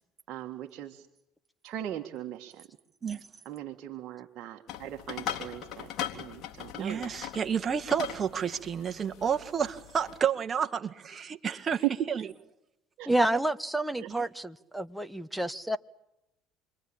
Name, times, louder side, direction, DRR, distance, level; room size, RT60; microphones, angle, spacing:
voice 1, 0.3-1.1 1.6-2.5 3.4-7.1 11.8-11.9 13.0-13.1, right 14 dB, 55° right, 1.8 m, -38 dB
sound 1, 4.7-10.2, left 10 dB, 55° left, 3.7 m, -40 dB
voice 2, 6.8-12.3 13.3-13.4 14.1-14.2, right 7 dB, 35° right, 1.9 m, -30 dB
voice 3, 13.0-15.8, right 1 dB, 5° right, 1.3 m, -29 dB
28.5 x 23.0 x 8.8 m
hypercardioid pair, 80°, 0 cm